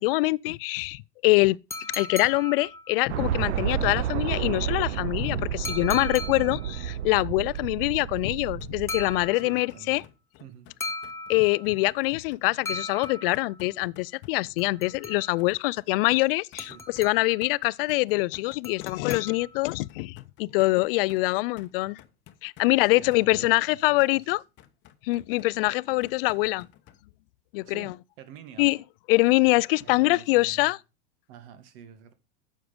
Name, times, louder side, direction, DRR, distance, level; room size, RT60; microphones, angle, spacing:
voice 1, 0.0-1.6 1.9-10.0 11.3-22.0 22.4-24.4 25.0-26.7 27.5-27.9 28.6-28.8 29.1-30.8, left 22 dB, 55° left, 0.4 m, -24 dB
sound 1, 1.7-3.2 5.6-6.8 8.9-9.8 10.8-11.8 12.7-13.7 14.6-15.5 16.6-17.5 18.6-19.7, left 2 dB, 10° left, 0.8 m, -38 dB
sound 2, 3.1-9.3, right 11 dB, 85° right, 0.7 m, -31 dB
sound 3, 7.6-27.0, left 12 dB, 35° left, 0.9 m, -53 dB
voice 2, 9.3-10.1 10.4-10.7 16.6-16.8 22.8-24.3 27.7-28.7 29.8-30.8 31.3-32.1, right 8 dB, 55° right, 2.0 m, -48 dB
9.5 x 6.6 x 5.2 m
supercardioid pair, 130°, 34 cm